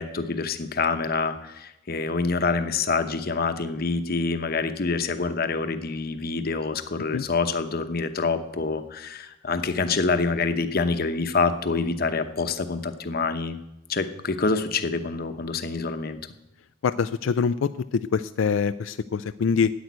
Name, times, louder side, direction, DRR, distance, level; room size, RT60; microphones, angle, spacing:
voice 1, 0.0-13.6 13.9-16.2, left 4 dB, 50° left, 9 dB, 0.9 m, -26 dB
voice 2, 16.8-19.7, left 6 dB, 90° left, 11 dB, 0.4 m, -24 dB
10.5 x 7.9 x 9.5 m, 0.89 s
head